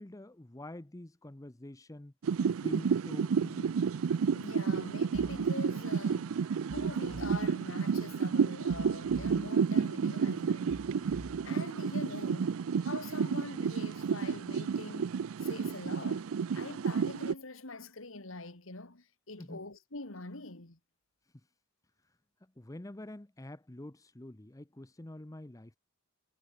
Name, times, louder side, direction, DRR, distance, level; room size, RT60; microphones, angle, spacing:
voice 1, 0.0-2.1 2.6-3.7 19.4-19.6 22.4-25.8, left 1 dB, 15° left, 0.8 m, -46 dB
sound 1, 2.2-17.3, right 6 dB, 75° right, 0.4 m, -31 dB
voice 2, 4.3-16.3 16.5-20.8, left 3 dB, 65° left, 2.5 m, -44 dB
sound 2, 5.1-5.5 6.7-7.5 8.7-9.5 10.7-11.5, right 1 dB, 15° right, 1.1 m, -48 dB
head